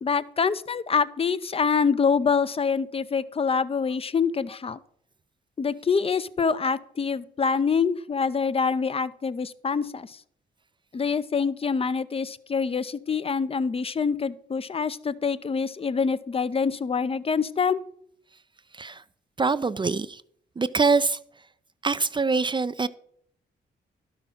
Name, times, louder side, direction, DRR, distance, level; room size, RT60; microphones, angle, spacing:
voice 1, 0.0-4.8 5.6-10.2 10.9-17.8, left 5 dB, 30° left, 0.6 m, -25 dB
voice 2, 19.4-20.2 20.6-21.2 21.8-22.9, right 4 dB, 25° right, 0.4 m, -24 dB
12.0 x 5.7 x 5.5 m
cardioid pair, 65°, 19 cm